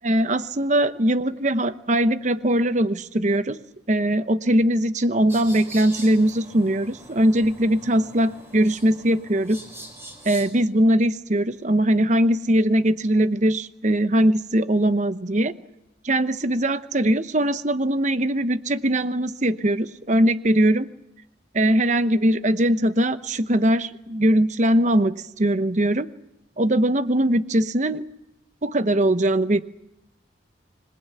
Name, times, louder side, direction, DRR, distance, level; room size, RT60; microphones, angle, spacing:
voice 1, 0.0-3.6 3.9-9.6 10.2-15.5 16.0-20.9 21.5-26.1 26.6-28.1 28.6-29.6, right 1 dB, 40° right, 12 dB, 0.9 m, -21 dB
sound 1, 5.3-10.5, right 1 dB, 15° right, 4.7 m, -42 dB
26.0 x 20.5 x 8.3 m, 0.87 s
head